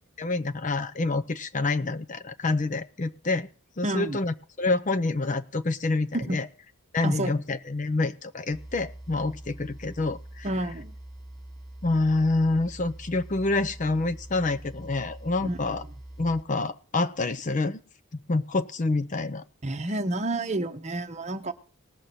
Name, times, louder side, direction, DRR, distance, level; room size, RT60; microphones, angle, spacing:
voice 1, 0.2-3.5 3.8-6.5 6.9-10.5 11.8-15.8 16.2-17.8 18.1-19.4, left 3 dB, 35° left, 13 dB, 0.6 m, -27 dB
voice 2, 3.8-4.2 6.1-6.4 7.0-7.3 10.4-10.9 15.4-15.6 19.6-21.5, right 1 dB, 30° right, 9 dB, 0.9 m, -29 dB
sound 1, 8.5-16.4, right 1 dB, ahead, 1.4 m, -44 dB
19.5 x 6.5 x 4.3 m, 0.38 s
head